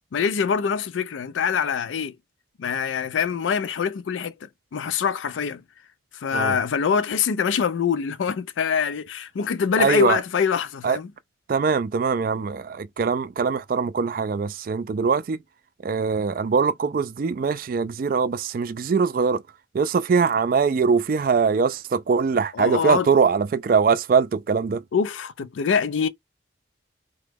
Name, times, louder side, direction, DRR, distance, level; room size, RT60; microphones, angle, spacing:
voice 1, 0.1-2.2 2.6-5.6 6.1-11.1 22.5-23.1 24.9-26.1, left 6 dB, 85° left, 0.4 m, -24 dB
voice 2, 9.8-10.2 10.8-11.0 11.5-15.4 15.8-19.4 19.7-24.8, right 5 dB, 50° right, 0.3 m, -22 dB
3.0 x 2.2 x 3.4 m
head